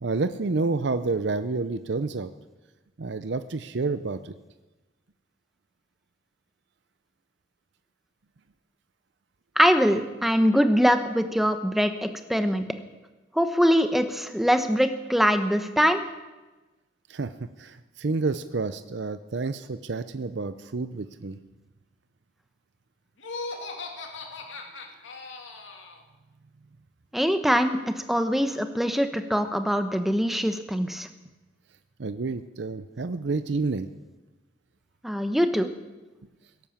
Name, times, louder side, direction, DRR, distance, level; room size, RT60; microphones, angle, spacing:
voice 1, 0.0-2.3 3.0-4.3 17.1-17.3 17.6-21.4 32.0-33.9, right 3 dB, 65° right, 11 dB, 0.6 m, -29 dB
voice 2, 9.6-12.6 13.3-16.0 27.1-31.1 35.0-35.7, equal, ahead, 8 dB, 0.9 m, -23 dB
Laughter, 23.2-26.0, left 3 dB, 80° left, 2.1 m, -38 dB
17.5 x 11.0 x 7.3 m, 1.1 s
head